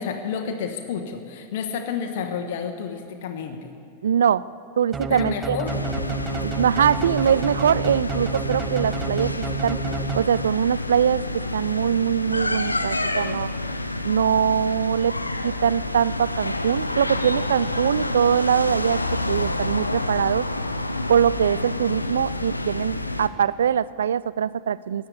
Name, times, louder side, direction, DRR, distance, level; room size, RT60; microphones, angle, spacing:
voice 1, 0.0-3.7 5.1-5.8, left 6 dB, 55° left, 5 dB, 1.3 m, -30 dB
voice 2, 4.0-4.4 4.8-5.6 6.4-9.8 10.1-13.5 14.0-15.2 15.4-19.0 19.3-20.5 21.1-25.1, right 8 dB, 65° right, 19 dB, 0.3 m, -22 dB
sound 1, 4.9-10.7, right 5 dB, 15° right, 0.6 m, -31 dB
sound 2, 5.7-23.3, left 2 dB, 85° left, 0.7 m, -28 dB
15.0 x 9.4 x 8.2 m, 2.4 s
figure-of-eight pair, 90°, 0 cm